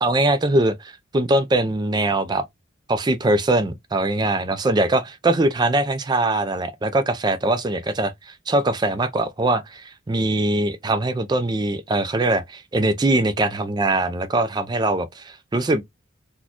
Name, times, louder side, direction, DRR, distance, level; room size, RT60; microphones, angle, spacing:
voice 1, 0.0-2.5 2.9-15.8, right 2 dB, 20° right, 0.3 m, -22 dB
4.1 x 2.1 x 2.9 m
head